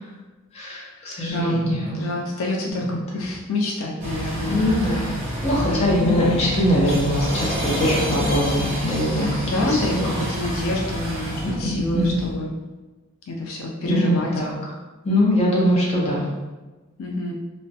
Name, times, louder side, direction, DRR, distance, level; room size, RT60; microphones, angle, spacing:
voice 1, 0.5-2.0 2.8-3.0 4.5-5.1 5.4-9.3 9.6-10.1 11.6-12.2 13.8-14.5 15.0-16.3, equal, 30° left, -5 dB, 0.6 m, -22 dB
voice 2, 1.3-1.7 1.9-5.1 5.5-6.1 9.1-12.5 13.3-14.3 17.0-17.3, left 1 dB, 75° left, -1 dB, 0.3 m, -27 dB
sound 1, 4.0-12.3, equal, 35° right, 0.7 m, -28 dB
2.3 x 2.1 x 2.6 m, 1.2 s
head